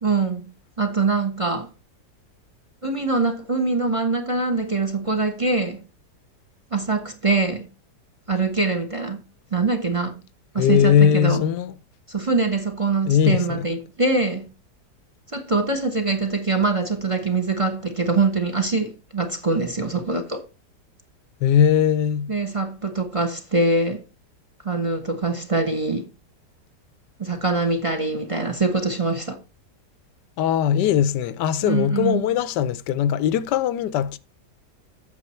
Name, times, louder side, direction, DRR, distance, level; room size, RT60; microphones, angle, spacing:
voice 1, 0.0-1.7 2.8-5.8 6.7-7.7 8.3-9.2 9.5-10.2 10.5-11.4 12.1-14.5 15.3-20.4 22.3-24.0 24.6-26.0 27.2-29.4 31.6-32.4, right 3 dB, 20° right, 1.0 m, -23 dB
voice 2, 10.6-11.7 13.1-13.7 21.4-22.3 30.4-34.2, left 9 dB, 85° left, 1.3 m, -20 dB
8.5 x 7.0 x 4.3 m
omnidirectional pair, 1.8 m